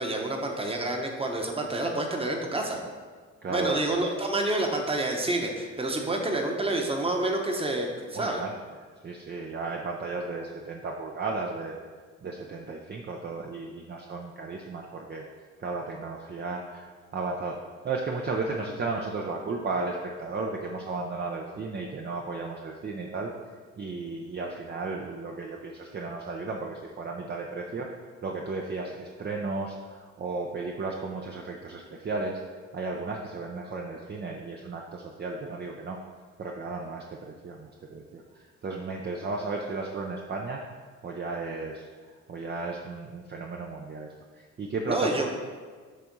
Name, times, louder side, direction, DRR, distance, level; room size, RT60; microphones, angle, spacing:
voice 1, 0.0-2.8 3.5-8.4 44.9-45.3, right 2 dB, 20° right, 2 dB, 1.1 m, -28 dB
voice 2, 3.4-4.1 8.1-8.5 9.0-11.8 12.2-15.3 15.6-16.8 17.1-17.6 17.8-23.3 23.8-27.9 28.2-32.4 32.7-36.0 36.4-40.6 41.0-41.9 42.3-45.4, right 3 dB, 35° right, 0 dB, 0.7 m, -34 dB
7.6 x 3.5 x 5.3 m, 1.5 s
cardioid pair, 90°, 30 cm